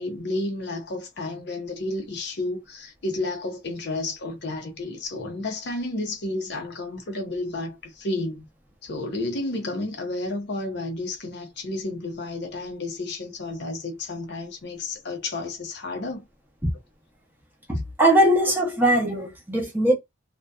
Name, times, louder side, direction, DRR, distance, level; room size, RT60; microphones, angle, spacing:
voice 1, 0.0-8.5 8.8-16.2, left 2 dB, 60° left, 0.6 m, -31 dB
voice 2, 17.7-20.0, right 1 dB, 10° right, 0.7 m, -20 dB
2.6 x 2.2 x 2.2 m
head